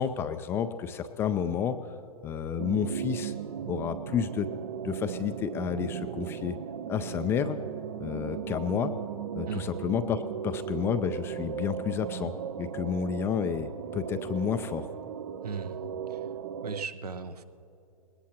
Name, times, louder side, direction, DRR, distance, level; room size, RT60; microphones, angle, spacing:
voice 1, 0.0-1.9 2.2-3.3 3.6-4.5 4.8-6.6 6.9-7.6 8.0-8.9 9.3-12.3 12.6-14.9, left 8 dB, 10° left, 10 dB, 0.3 m, -30 dB
sound 1, 2.6-16.9, right 9 dB, 55° right, 0.5 m, -37 dB
voice 2, 15.4-15.8 16.1-16.2 16.6-17.4, right 5 dB, 75° right, 11 dB, 1.0 m, -37 dB
20.5 x 18.0 x 2.9 m, 2.7 s
figure-of-eight pair, 120°, 20 cm